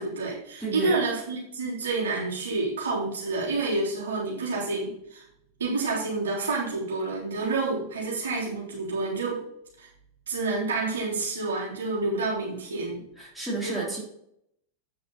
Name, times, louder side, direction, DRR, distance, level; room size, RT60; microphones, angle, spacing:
voice 1, 0.0-5.2 5.6-9.4 9.8-9.9 10.3-13.0 13.6-13.9, right 3 dB, 65° right, -5 dB, 3.5 m, -29 dB
voice 2, 0.6-1.0 13.2-14.0, right 3 dB, 5° right, -6 dB, 3.1 m, -31 dB
8.6 x 6.6 x 4.1 m, 0.74 s
figure-of-eight pair, 90°, 0 cm